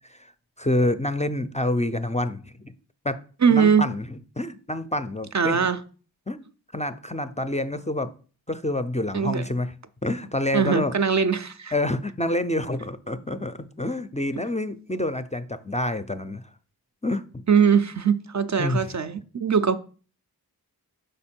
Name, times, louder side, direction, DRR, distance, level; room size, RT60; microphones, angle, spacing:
voice 1, 0.6-2.7 3.0-3.2 3.5-5.7 6.3-6.4 6.7-8.1 8.5-9.7 10.0-10.9 11.7-16.4 17.0-17.2 18.6-18.8, left 1 dB, 20° left, 0.4 m, -27 dB
voice 2, 3.4-3.9 5.3-5.8 9.1-9.5 10.5-11.7 17.5-19.8, right 6 dB, 45° right, 0.4 m, -21 dB
5.1 x 4.4 x 4.3 m
wide cardioid pair, 45°, 39 cm